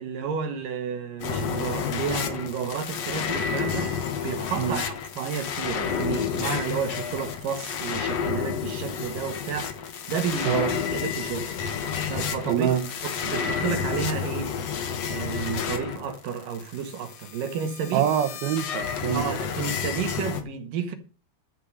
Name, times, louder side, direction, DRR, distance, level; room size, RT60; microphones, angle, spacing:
voice 1, 0.0-11.5 12.1-12.7 13.0-14.6 15.1-18.1 19.1-20.9, right 7 dB, 65° right, 3.1 m, -31 dB
sound 1, 1.2-20.4, left 7 dB, 55° left, 2.1 m, -30 dB
voice 2, 12.5-12.8 17.9-19.4, right 9 dB, 85° right, 3.2 m, -25 dB
12.0 x 6.7 x 6.5 m
omnidirectional pair, 4.2 m